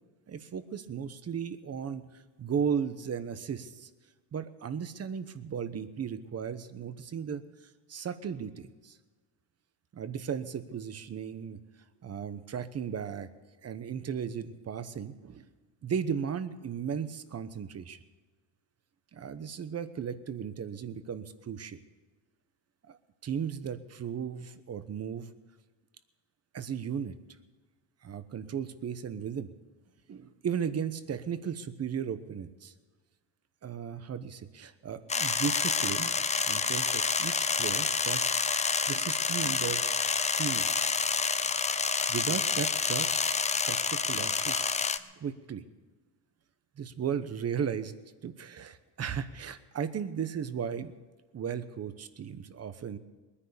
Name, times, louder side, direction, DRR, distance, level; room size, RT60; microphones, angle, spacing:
voice 1, 0.3-2.0 2.4-3.9 4.3-7.4 7.9-9.0 9.9-11.6 12.0-13.3 13.6-15.5 15.8-18.0 19.1-21.8 22.9-25.3 26.5-27.1 28.0-29.5 30.1-32.7 33.6-36.1 36.4-38.4 38.9-39.9 40.4-40.9 41.8-43.2 43.4-44.7 45.2-45.6 46.8-47.9 48.2-50.9 51.3-53.0, right 7 dB, 35° right, 12 dB, 1.0 m, -36 dB
sound 1, 35.1-45.0, left 5 dB, 15° left, 0.5 m, -28 dB
21.0 x 10.0 x 6.9 m, 1.3 s
cardioid pair, 120°, 45 cm